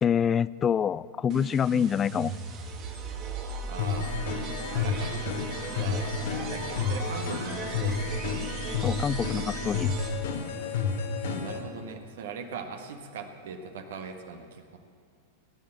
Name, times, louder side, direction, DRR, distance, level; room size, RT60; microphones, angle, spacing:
voice 1, 0.0-2.3 8.8-9.9, left 8 dB, 25° left, 20 dB, 0.3 m, -26 dB
sound 1, 1.3-10.4, right 4 dB, 35° right, 2.0 m, -38 dB
voice 2, 3.7-4.2 4.7-5.3 5.7-8.3 11.2-14.8, right 5 dB, 60° right, 5 dB, 1.5 m, -40 dB
sound 2, 3.8-11.6, left 5 dB, 60° left, 1.6 m, -31 dB
18.0 x 10.5 x 7.5 m, 2.2 s
figure-of-eight pair, 90°, 0 cm